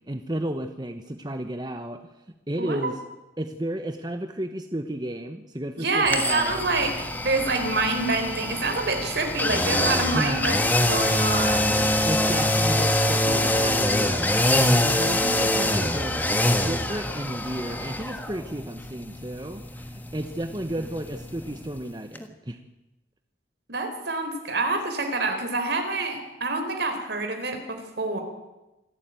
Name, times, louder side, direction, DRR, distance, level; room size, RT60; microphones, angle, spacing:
voice 1, 0.1-2.0 2.5-3.0 3.4-6.6 10.1-10.4 12.0-16.2 16.6-22.6, right 1 dB, 20° right, 7 dB, 1.0 m, -32 dB
voice 2, 2.6-2.9 5.8-6.9 7.2-10.6 10.8-11.8 15.3-15.4 16.1-16.2 23.7-28.2, right 3 dB, 65° right, 5 dB, 4.2 m, -27 dB
sound 1, 6.1-21.9 22.2-22.3, left 1 dB, 10° left, 1.6 m, -25 dB
26.5 x 13.0 x 9.1 m, 1.0 s
head